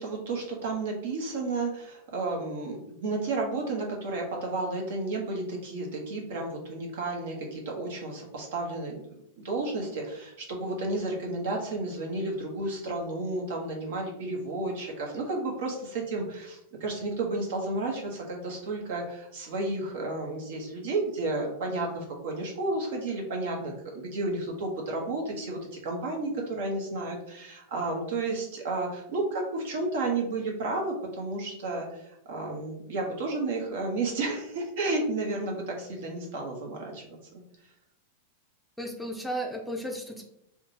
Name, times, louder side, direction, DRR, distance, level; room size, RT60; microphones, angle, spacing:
voice 1, 0.0-9.1 9.4-37.4, right 2 dB, 70° right, 0 dB, 1.0 m, -32 dB
voice 2, 38.8-40.2, right 1 dB, ahead, 1 dB, 0.5 m, -34 dB
3.6 x 2.2 x 2.8 m, 0.78 s
hypercardioid pair, 110°, 0 cm